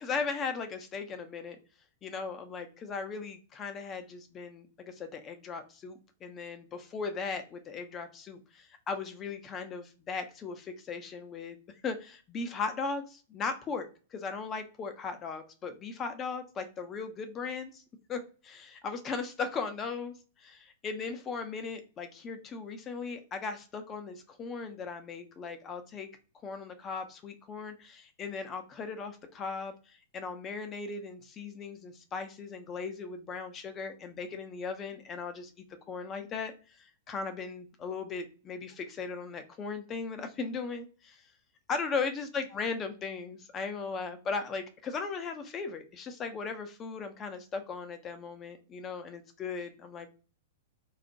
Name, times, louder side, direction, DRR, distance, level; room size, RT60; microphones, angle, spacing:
voice 1, 0.0-1.6 2.0-11.6 11.8-17.8 18.1-26.1 26.4-41.2 41.7-50.1, left 4 dB, 25° left, 8 dB, 0.4 m, -38 dB
2.3 x 2.1 x 2.7 m, 0.35 s
figure-of-eight pair, 100°, 0 cm